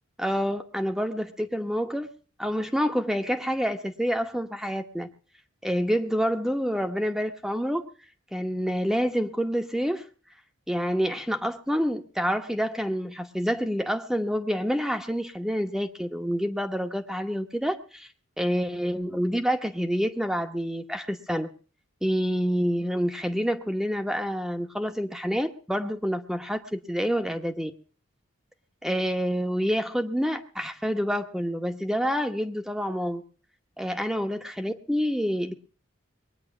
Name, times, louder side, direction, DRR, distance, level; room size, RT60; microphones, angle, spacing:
voice 1, 0.2-2.1 2.4-5.1 5.6-7.8 8.3-10.0 10.7-18.1 18.4-21.5 22.0-27.7 28.8-33.2 33.8-35.5, equal, ahead, 5 dB, 1.0 m, -27 dB
22.0 x 9.7 x 5.9 m, 0.40 s
head